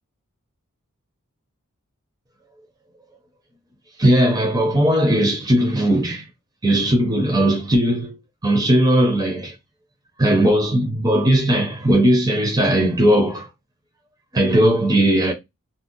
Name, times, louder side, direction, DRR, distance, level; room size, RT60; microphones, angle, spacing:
voice 1, 4.0-6.2 6.6-8.2 8.4-9.5 10.2-13.5 14.3-15.3, right 1 dB, 20° right, 0.6 m, -18 dB
2.6 x 2.0 x 3.7 m
head